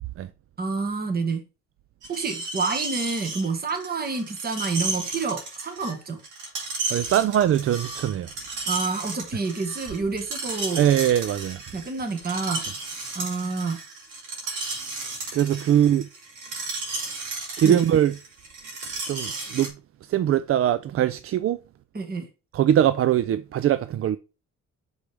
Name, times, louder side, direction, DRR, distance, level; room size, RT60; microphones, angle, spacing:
voice 1, 0.6-1.4 2.1-6.2 8.7-10.9 11.7-12.6 13.1-13.8 17.6-17.8 21.9-22.3, right 4 dB, 30° right, 1.4 m, -28 dB
Screech, 2.0-19.7, right 3 dB, 85° right, 2.3 m, -34 dB
voice 2, 6.9-8.3 10.8-11.6 15.3-16.0 17.6-18.1 19.1-19.7 20.1-21.6 22.5-24.2, right 10 dB, 50° right, 0.4 m, -21 dB
6.3 x 5.1 x 3.2 m
cardioid pair, 90°, 30 cm